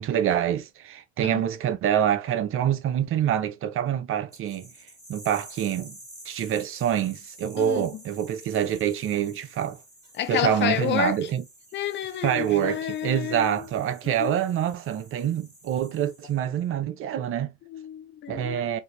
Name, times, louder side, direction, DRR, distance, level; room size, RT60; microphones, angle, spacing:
voice 1, 0.0-4.7 5.1-6.0 6.3-9.8 10.3-11.4 12.2-17.5 18.3-18.8, right 10 dB, 35° right, 0.7 m, -26 dB
sound 1, 4.3-16.6, right 1 dB, 10° right, 2.7 m, -50 dB
voice 2, 7.6-7.9 10.1-11.3 11.7-13.6 14.0-14.4 17.7-18.8, left 10 dB, 30° left, 0.5 m, -30 dB
5.1 x 2.7 x 3.1 m
figure-of-eight pair, 65°, 38 cm